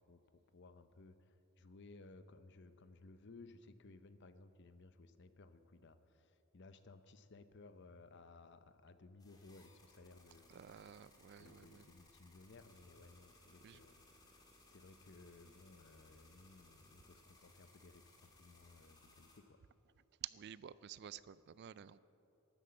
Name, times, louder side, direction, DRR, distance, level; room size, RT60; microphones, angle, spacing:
voice 1, 0.1-10.5 11.4-19.6, left 3 dB, 55° left, 11 dB, 0.6 m, -60 dB
sound 1, 9.2-19.4, left 2 dB, 20° left, 1.8 m, -65 dB
voice 2, 10.5-11.9 13.6-13.8 20.2-22.0, right 10 dB, 50° right, 17 dB, 0.3 m, -51 dB
12.5 x 9.9 x 7.7 m, 3.0 s
head